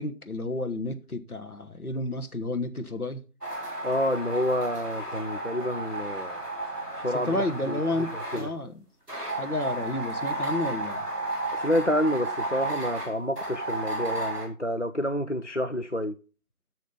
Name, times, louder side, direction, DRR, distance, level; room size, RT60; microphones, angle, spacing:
voice 1, 0.0-3.2 7.1-8.9 9.3-11.0, left 2 dB, 70° left, 1.3 m, -31 dB
sound 1, 3.4-8.5 9.1-14.5, right 2 dB, ahead, 1.9 m, -33 dB
voice 2, 3.8-6.4 7.0-7.8 8.3-8.5 11.5-16.2, equal, 50° left, 0.5 m, -28 dB
6.8 x 6.5 x 5.5 m
figure-of-eight pair, 175°, 46 cm